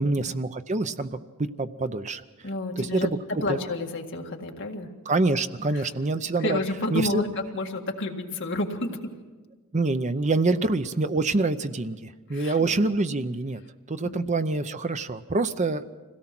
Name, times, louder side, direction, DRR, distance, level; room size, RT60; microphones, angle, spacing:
voice 1, 0.0-2.2 2.8-3.2 3.5-3.6 5.1-6.6 6.9-7.2 9.7-13.6 13.9-15.9, right 3 dB, 30° right, 11 dB, 0.7 m, -26 dB
voice 2, 2.4-3.1 3.4-4.9 5.7-5.9 6.3-7.3 7.5-9.0 12.3-12.7 14.0-14.2, left 2 dB, 55° left, 2 dB, 1.9 m, -30 dB
25.0 x 17.0 x 6.0 m, 1.3 s
head